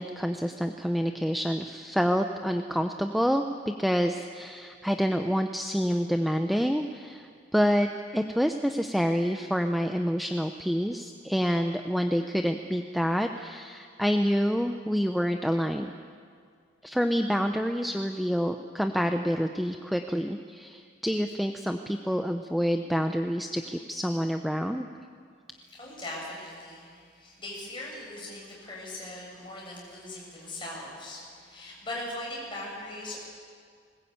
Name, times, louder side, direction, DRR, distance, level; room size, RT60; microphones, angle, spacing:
voice 1, 0.0-15.9 16.8-24.9, equal, ahead, 5 dB, 0.6 m, -27 dB
voice 2, 25.5-33.2, left 1 dB, 25° left, -3 dB, 7.4 m, -40 dB
20.5 x 20.0 x 8.7 m, 2.1 s
head